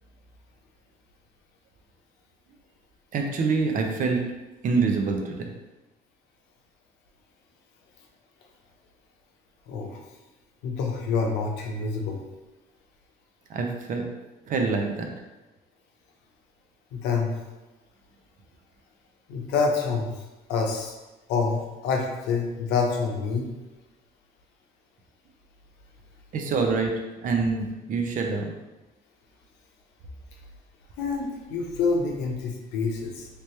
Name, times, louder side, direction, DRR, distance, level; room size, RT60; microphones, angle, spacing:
voice 1, 3.1-4.2 4.6-5.5 13.5-14.1 14.5-15.1 26.3-26.9 27.2-28.5, right 4 dB, 50° right, 3 dB, 0.6 m, -25 dB
voice 2, 9.7-10.0 10.6-12.2 16.9-17.4 19.3-20.9 21.3-23.5 31.0-33.3, left 4 dB, 85° left, 1 dB, 0.7 m, -27 dB
3.3 x 2.9 x 3.1 m, 1.1 s
cardioid pair, 110°, 17 cm